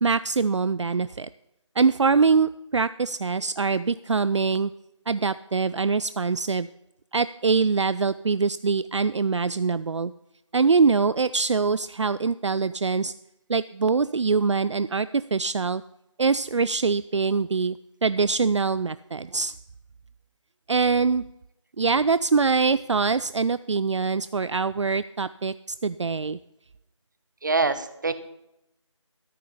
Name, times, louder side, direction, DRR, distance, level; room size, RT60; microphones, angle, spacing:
voice 1, 0.0-1.3 1.8-4.7 5.1-6.7 7.1-10.1 10.5-13.1 13.5-15.8 16.2-17.8 18.0-19.5 20.7-21.2 21.8-25.5 25.8-26.4, right 4 dB, 65° right, 16 dB, 0.4 m, -23 dB
voice 2, 27.4-28.1, right 3 dB, 35° right, 12 dB, 0.9 m, -24 dB
13.5 x 8.6 x 5.6 m, 0.86 s
figure-of-eight pair, 170°, 16 cm